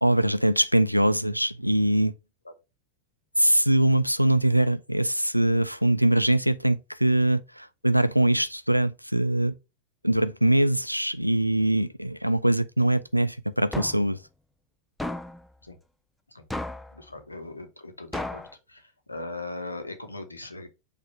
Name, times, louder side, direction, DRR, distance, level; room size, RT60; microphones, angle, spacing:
voice 1, 0.0-2.1 3.4-9.6 10.0-14.2, right 1 dB, 90° right, 0.3 m, -22 dB
sound 1, 13.7-14.2 15.0-15.4 16.5-17.0 18.1-18.5, left 1 dB, 5° left, 0.4 m, -33 dB
voice 2, 16.9-18.4 18.7-18.8 19.1-20.7, left 2 dB, 80° left, 0.8 m, -38 dB
4.9 x 2.4 x 4.3 m
figure-of-eight pair, 90°, 0 cm